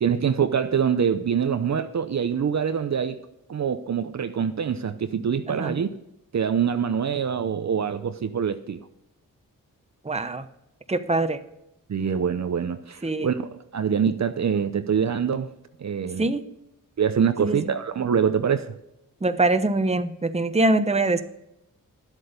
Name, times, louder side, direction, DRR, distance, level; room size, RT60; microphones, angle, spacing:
voice 1, 0.0-3.2 3.5-5.9 6.3-8.9 11.9-15.5 15.8-16.3 17.0-18.7, right 7 dB, 55° right, 0.7 m, -25 dB
voice 2, 5.5-5.8 10.0-10.4 10.9-11.4 13.0-13.3 16.2-16.4 17.4-17.6 19.2-21.2, right 2 dB, 20° right, 1.0 m, -23 dB
11.0 x 8.0 x 5.2 m
cardioid pair, 55°, 34 cm